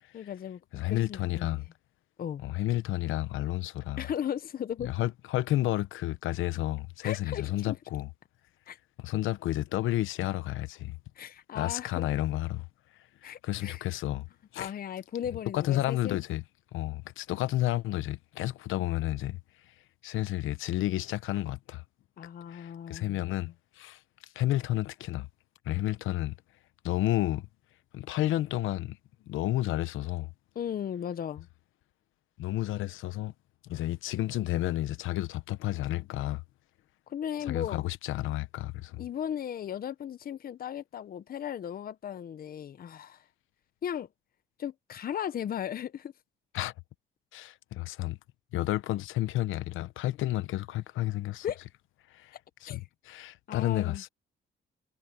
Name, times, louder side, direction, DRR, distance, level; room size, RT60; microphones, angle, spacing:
voice 1, 0.1-0.6 0.9-1.6 2.2-2.4 4.0-4.9 7.0-7.8 8.7-8.8 11.2-12.1 13.2-13.8 14.6-16.2 22.2-23.3 30.5-31.5 37.1-37.8 39.0-43.2 43.8-44.1 44.6-46.1 51.4-51.6 52.7-52.8 53.5-54.0, left 9 dB, 50° left, 0.7 m, -36 dB
voice 2, 0.7-1.6 2.4-4.1 4.8-8.1 9.0-11.0 11.5-12.7 13.2-14.3 14.5-14.7 15.5-16.4 16.7-19.4 20.0-21.8 22.5-24.0 24.3-25.3 25.7-26.4 26.8-27.5 27.9-29.0 29.3-30.3 32.4-33.3 33.6-36.4 37.4-39.0 46.5-46.7 47.3-48.2 48.5-51.5 52.1-52.3 52.6-54.1, left 15 dB, 85° left, 0.9 m, -31 dB
cardioid pair, 90°, 20 cm